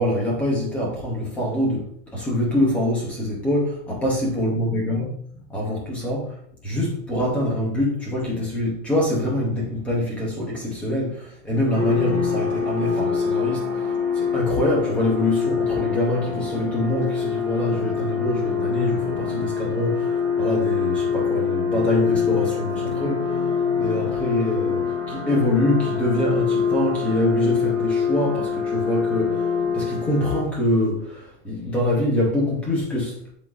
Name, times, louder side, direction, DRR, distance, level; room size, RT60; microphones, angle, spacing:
voice 1, 0.0-5.1 5.5-6.4 6.6-33.2, left 1 dB, 5° left, -4 dB, 0.5 m, -25 dB
sound 1, 11.7-30.4, left 6 dB, 20° left, 1.7 m, -25 dB
10.5 x 3.8 x 2.4 m, 0.66 s
supercardioid pair, 175°, 40 cm